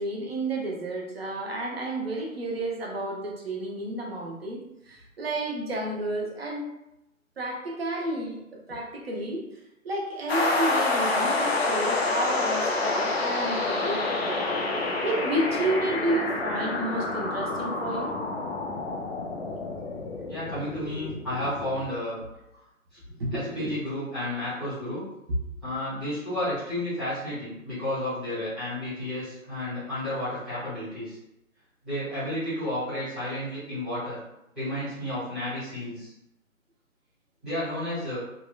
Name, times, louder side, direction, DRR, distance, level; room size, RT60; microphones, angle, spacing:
voice 1, 0.0-4.6 4.9-6.7 7.4-9.4 9.8-18.1 23.1-23.7 25.3-25.4, right 1 dB, 45° right, 0 dB, 0.7 m, -31 dB
sound 1, 10.3-21.9, left 2 dB, 50° left, 0.5 m, -28 dB
voice 2, 20.3-22.2 23.3-25.0 25.6-31.2 31.8-34.2 34.5-36.1 37.4-38.2, left 1 dB, ahead, -18 dB, 0.7 m, -32 dB
3.6 x 2.1 x 2.2 m, 0.86 s
figure-of-eight pair, 135°, 42 cm